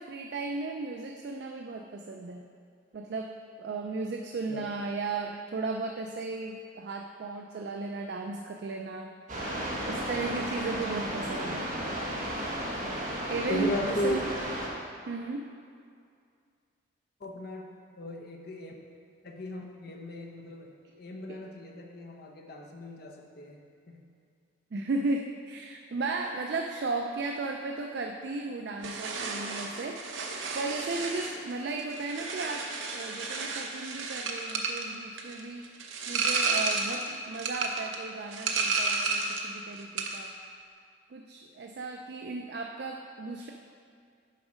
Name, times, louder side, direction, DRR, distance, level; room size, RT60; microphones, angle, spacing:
voice 1, 0.0-2.4 2.9-9.1 9.8-11.7 13.3-14.3 15.1-15.5 21.3-21.4 24.7-40.4 41.1-43.5, right 3 dB, 55° right, 3 dB, 0.4 m, -35 dB
sound 1, 9.3-14.7, equal, 40° right, 1.1 m, -34 dB
voice 2, 13.5-14.2 17.2-18.8 19.2-23.6 23.9-24.1, left 1 dB, 50° left, 1 dB, 0.8 m, -36 dB
sound 2, 28.8-39.5 39.8-40.3, right 3 dB, 80° right, 0.8 m, -32 dB
7.4 x 5.1 x 4.9 m, 2.3 s
head